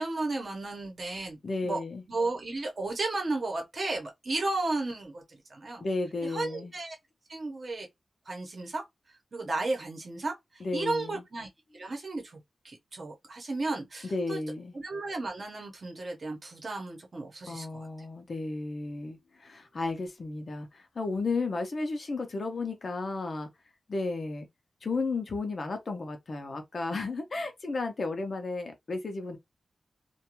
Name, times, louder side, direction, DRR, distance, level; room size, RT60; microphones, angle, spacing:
voice 1, 0.0-1.8 2.1-5.8 6.2-7.0 7.3-7.9 8.3-8.8 9.3-10.3 10.7-11.5 11.7-12.4 12.6-14.4 14.7-17.9, right 2 dB, 50° right, 0.9 m, -34 dB
voice 2, 1.4-2.0 5.8-6.7 10.6-11.2 14.0-14.7 17.5-23.5 23.9-24.5 24.8-29.4, left 3 dB, 50° left, 0.6 m, -33 dB
2.4 x 2.2 x 2.9 m
wide cardioid pair, 135°, 0 cm